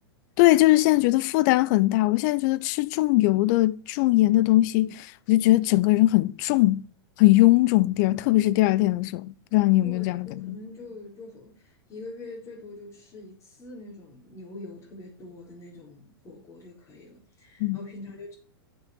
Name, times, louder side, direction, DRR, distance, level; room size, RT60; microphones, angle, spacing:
voice 1, 0.4-6.9 7.2-10.6 17.6-17.8, left 18 dB, 45° left, 0.6 m, -21 dB
voice 2, 9.8-18.3, left 2 dB, 20° left, 4.4 m, -44 dB
7.5 x 6.2 x 7.4 m
hypercardioid pair, 105°, 13 cm